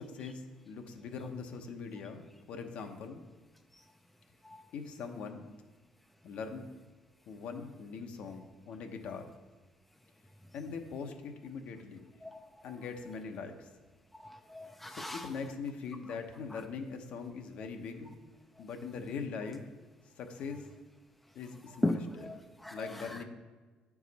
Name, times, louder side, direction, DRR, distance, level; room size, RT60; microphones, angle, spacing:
voice 1, 0.0-3.2 4.7-5.5 6.2-6.7 7.3-9.3 10.5-12.0 12.6-13.7 14.9-18.1 18.6-19.6 20.2-20.7 21.3-22.2 22.7-23.2, left 5 dB, 65° left, 5 dB, 0.8 m, -41 dB
voice 2, 14.1-15.3 16.5-16.6 21.8-23.2, left 1 dB, 5° left, 5 dB, 0.4 m, -37 dB
9.2 x 4.8 x 4.1 m, 1.3 s
cardioid pair, 115°, 2 cm